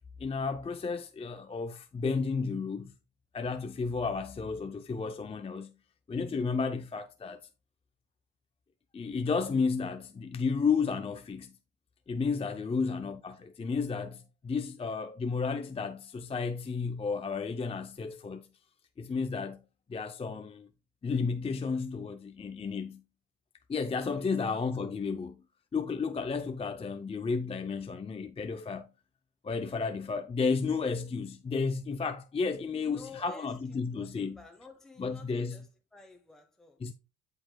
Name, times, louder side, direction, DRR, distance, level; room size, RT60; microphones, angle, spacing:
voice 1, 0.2-2.9 3.3-5.7 6.1-7.4 8.9-11.5 12.1-18.5 19.0-19.6 19.9-20.7 21.0-23.0 23.7-25.4 25.7-28.9 29.4-34.4 35.0-35.6 36.8-36.9, left 5 dB, 20° left, 0.4 m, -32 dB
voice 2, 24.1-24.6 32.7-36.8, left 3 dB, ahead, 1.0 m, -52 dB
7.7 x 6.4 x 2.2 m
cardioid pair, 90°, 30 cm